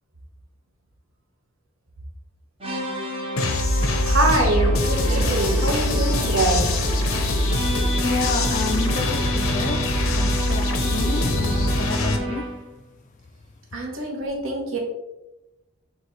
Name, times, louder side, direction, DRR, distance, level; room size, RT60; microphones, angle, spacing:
sound 1, 2.6-12.7, equal, 25° right, 0.7 m, -31 dB
sound 2, 3.4-12.2, left 1 dB, 70° left, 0.6 m, -23 dB
voice 1, 4.0-6.7 13.7-14.8, right 2 dB, 65° right, 0 dB, 1.1 m, -24 dB
voice 2, 7.7-12.5, left 3 dB, 35° left, 5 dB, 0.4 m, -30 dB
6.7 x 2.4 x 3.1 m, 0.96 s
head